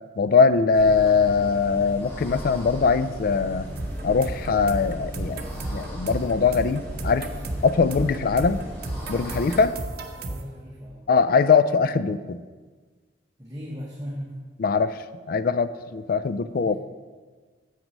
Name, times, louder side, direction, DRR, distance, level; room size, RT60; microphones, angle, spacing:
voice 1, 0.2-3.7 4.0-7.3 7.6-8.6 9.1-9.7 11.1-12.4 14.6-15.0 15.3-16.8, left 5 dB, 50° left, 14 dB, 0.3 m, -21 dB
sound 1, 0.7-9.6, equal, 15° left, 2.1 m, -36 dB
sound 2, 3.8-10.4, right 2 dB, 55° right, 0.7 m, -34 dB
voice 2, 10.1-11.0 13.4-14.4 16.6-16.8, equal, 20° right, -4 dB, 1.0 m, -37 dB
7.4 x 6.0 x 5.3 m, 1.4 s
head